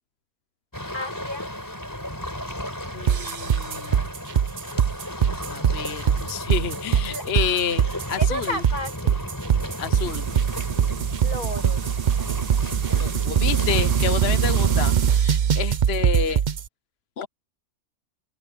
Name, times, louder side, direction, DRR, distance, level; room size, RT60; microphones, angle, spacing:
sound 1, 0.7-15.2, equal, 10° left, 4.4 m, -34 dB
voice 1, 0.9-1.5 7.1-7.2 8.1-9.3 11.2-11.8, left 1 dB, 75° left, 7.8 m, -32 dB
voice 2, 2.9-4.1 5.5-8.6 9.8-10.3 13.0-16.4 17.2-17.3, left 7 dB, 50° left, 1.1 m, -29 dB
sound 2, 3.1-16.6, right 8 dB, 55° right, 0.5 m, -22 dB
open air
omnidirectional pair, 1.6 m